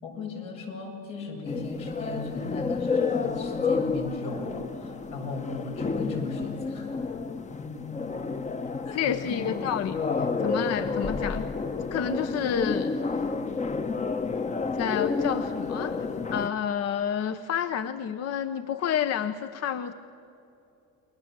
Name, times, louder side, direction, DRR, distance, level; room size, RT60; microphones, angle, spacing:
voice 1, 0.0-6.9 7.6-7.7 8.8-9.4, left 3 dB, 85° left, 0 dB, 7.2 m, -36 dB
sound 1, 1.5-16.5, left 4 dB, 20° left, 0.9 m, -30 dB
voice 2, 8.9-11.4 11.9-13.1 14.8-15.9 16.3-19.9, left 8 dB, 50° left, 10 dB, 1.0 m, -29 dB
29.5 x 21.5 x 7.6 m, 2.9 s
supercardioid pair, 110°, 33 cm